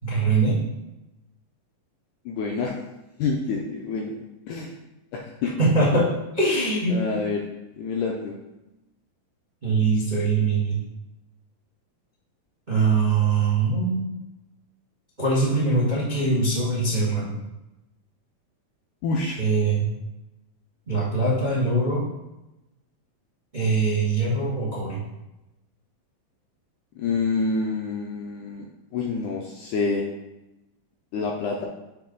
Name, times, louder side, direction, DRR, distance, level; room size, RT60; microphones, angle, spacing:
voice 1, 0.0-0.5 5.4-7.0 9.6-10.8 12.7-14.1 15.2-17.3 19.4-19.9 20.9-22.0 23.5-25.0, right 3 dB, 65° right, -7 dB, 0.4 m, -22 dB
voice 2, 2.3-2.8 3.2-4.2 4.5-4.7 5.1-5.5 6.9-7.4 7.8-8.3 19.0-19.4 27.0-28.7 28.9-30.1 31.1-31.7, left 4 dB, 80° left, 0 dB, 1.8 m, -27 dB
6.8 x 3.3 x 5.2 m, 0.96 s
omnidirectional pair, 4.1 m